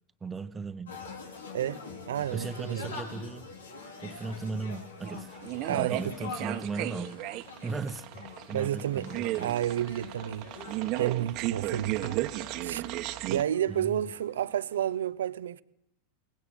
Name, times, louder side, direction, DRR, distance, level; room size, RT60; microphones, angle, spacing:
voice 1, 0.2-1.0 2.3-3.5 4.0-5.4 5.7-7.4 7.6-9.6 13.7-14.0, right 4 dB, 15° right, 1.3 m, -37 dB
sound 1, 0.9-15.0, left 4 dB, 85° left, 4.6 m, -45 dB
voice 2, 1.5-2.9 5.7-6.0 8.5-10.5 10.9-12.2 12.6-12.8 13.3-15.6, right 11 dB, 80° right, 0.8 m, -31 dB
sound 2, 5.0-13.4, right 17 dB, 50° right, 1.4 m, -35 dB
23.0 x 18.5 x 9.0 m
hypercardioid pair, 105°, 0 cm